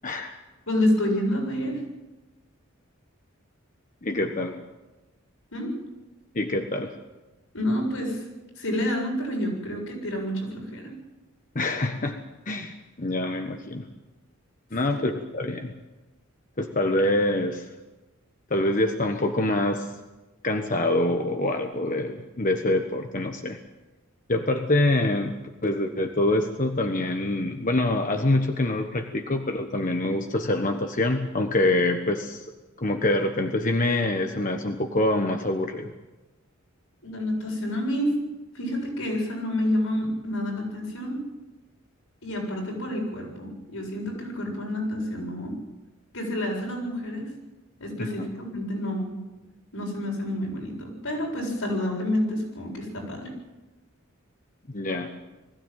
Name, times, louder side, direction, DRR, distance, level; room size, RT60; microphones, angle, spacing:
voice 1, 0.0-0.4 4.0-4.6 6.3-6.9 11.5-12.2 12.5-13.8 14.7-15.7 16.6-17.7 18.5-19.9 20.4-23.6 24.3-25.3 25.6-32.4 32.8-35.9 48.0-48.3 54.7-55.1, left 1 dB, 40° left, 4 dB, 1.2 m, -25 dB
voice 2, 0.7-1.8 5.5-5.7 7.5-8.2 8.6-10.9 14.9-15.0 37.0-38.1 38.5-41.2 42.2-45.6 46.1-47.3 47.8-49.1 49.7-53.3, left 1 dB, 90° left, -1 dB, 7.8 m, -28 dB
21.0 x 15.5 x 9.1 m, 1.1 s
head